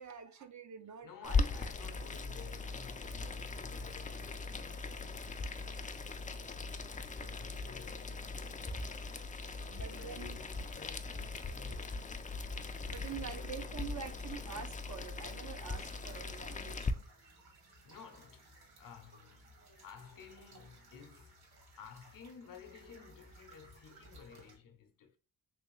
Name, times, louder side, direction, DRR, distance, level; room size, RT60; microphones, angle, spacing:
voice 1, 0.0-1.4 9.7-10.4 12.9-17.4, right 7 dB, 45° right, 0.6 m, -46 dB
voice 2, 1.0-6.8 7.2-9.0 9.8-12.0 13.1-13.9 17.2-21.4 21.8-25.2, left 7 dB, 55° left, 0.8 m, -55 dB
Boiling, 1.2-16.9, left 3 dB, 20° left, 0.4 m, -39 dB
sound 1, 15.7-24.6, right 1 dB, 65° right, 1.7 m, -59 dB
3.4 x 3.0 x 3.0 m
supercardioid pair, 50°, 41 cm